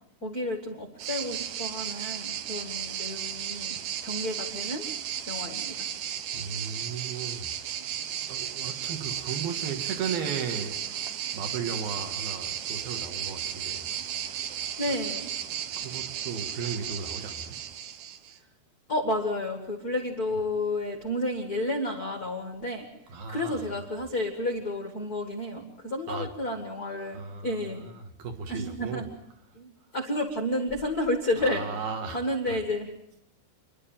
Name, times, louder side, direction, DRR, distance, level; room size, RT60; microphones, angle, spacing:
voice 1, 0.2-3.8 4.0-4.9 5.2-5.9 14.8-15.3 18.9-22.9 23.3-27.8 28.5-29.1 29.5-31.7 32.1-32.9, left 1 dB, 70° left, 0.8 m, -31 dB
sound 1, 1.0-18.4, right 10 dB, 80° right, 1.8 m, -34 dB
voice 2, 6.3-7.5 8.3-10.8 11.3-13.9 15.5-17.6 23.1-23.8 26.1-26.3 27.1-29.0 31.4-32.6, right 6 dB, 60° right, 3.3 m, -36 dB
29.0 x 11.5 x 9.0 m
omnidirectional pair, 5.1 m